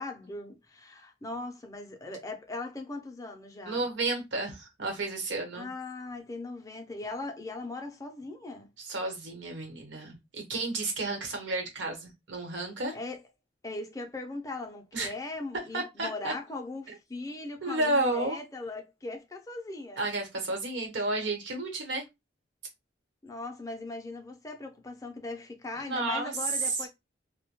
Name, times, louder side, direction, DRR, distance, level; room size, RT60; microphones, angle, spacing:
voice 1, 0.0-3.9 5.5-8.7 12.9-13.2 13.6-20.0 23.2-26.9, left 2 dB, 15° left, 0.4 m, -39 dB
voice 2, 3.6-5.7 8.8-13.0 14.9-15.1 15.7-16.3 17.6-18.4 20.0-22.0 25.8-26.3, right 2 dB, 80° right, 1.0 m, -32 dB
2.1 x 2.1 x 2.9 m
head